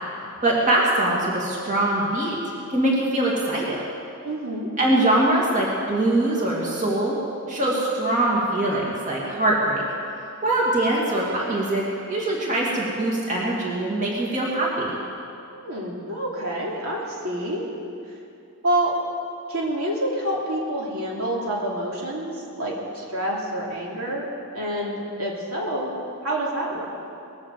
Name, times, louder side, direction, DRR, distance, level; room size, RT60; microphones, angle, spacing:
voice 1, 0.4-2.4 2.7-3.8 4.8-7.2 7.5-9.8 10.4-11.8 12.1-15.0, right 1 dB, 35° right, -4 dB, 2.6 m, -22 dB
voice 2, 4.2-4.7 15.5-17.7 18.6-18.9 19.5-24.3 24.5-25.9 26.2-26.9, right 1 dB, 75° right, -4 dB, 3.1 m, -27 dB
20.5 x 8.8 x 7.8 m, 2.5 s
head